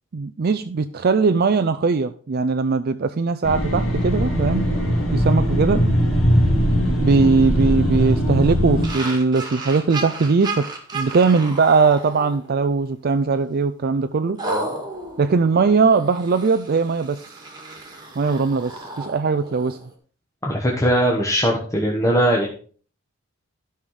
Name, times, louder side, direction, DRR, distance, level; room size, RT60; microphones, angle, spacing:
voice 1, 0.1-4.7 5.1-5.8 7.0-10.7 10.9-14.4 15.2-17.2 18.2-19.8, right 4 dB, 45° right, 10 dB, 0.4 m, -20 dB
sound 1, 3.4-8.9, equal, 70° left, 2.9 m, -20 dB
sound 2, 8.8-12.7 13.1-13.4 14.4-19.9, right 2 dB, 20° right, 1.9 m, -33 dB
voice 2, 20.4-22.5, equal, 15° left, -2 dB, 1.3 m, -20 dB
12.5 x 5.8 x 4.8 m, 0.42 s
head